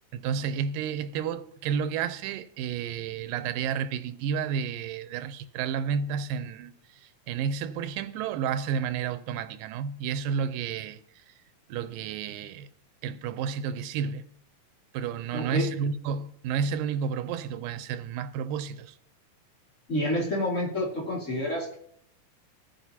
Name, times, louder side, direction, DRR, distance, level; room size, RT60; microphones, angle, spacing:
voice 1, 0.1-11.0 11.3-11.4 11.7-12.7 13.0-14.2 14.9-19.0, right 7 dB, 90° right, 2.3 m, -31 dB
voice 2, 15.3-15.7 19.9-21.8, left 1 dB, 25° left, 1.9 m, -28 dB
17.5 x 9.2 x 2.8 m
omnidirectional pair, 3.9 m